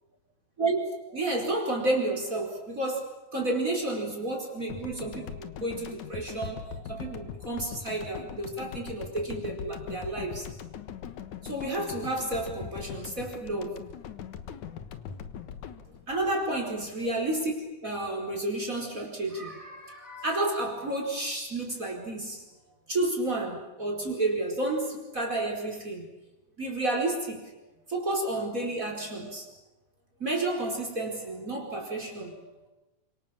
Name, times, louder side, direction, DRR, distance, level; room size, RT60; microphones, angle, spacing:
voice 1, 0.6-10.5 11.4-13.8 16.1-17.6 17.8-22.4 22.9-26.1 26.6-27.5 27.9-29.5 30.2-32.5, right 2 dB, 25° right, 2 dB, 5.1 m, -31 dB
sound 1, 4.7-17.2, left 8 dB, 70° left, 2.7 m, -41 dB
30.0 x 25.5 x 7.4 m, 1.0 s
omnidirectional pair, 3.6 m